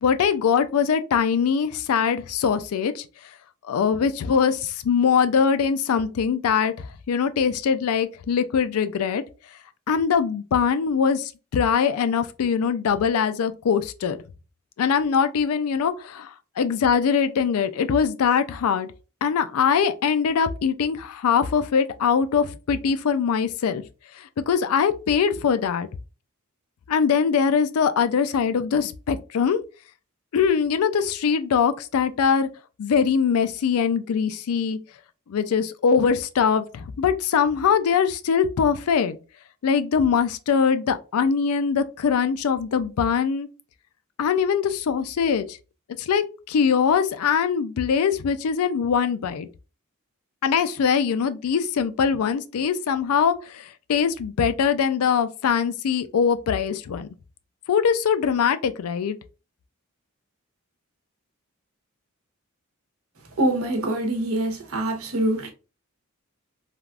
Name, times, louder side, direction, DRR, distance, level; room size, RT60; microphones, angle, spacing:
voice 1, 0.0-3.0 3.6-9.2 9.9-14.2 14.8-18.9 19.2-23.8 24.1-25.9 26.9-29.6 30.3-32.5 32.8-34.8 35.3-39.2 39.6-43.5 44.2-45.6 46.0-49.5 50.4-57.1 57.7-59.2, left 6 dB, 85° left, 0.4 m, -22 dB
voice 2, 63.4-65.5, right 1 dB, 75° right, 0.9 m, -24 dB
3.3 x 2.4 x 2.3 m
head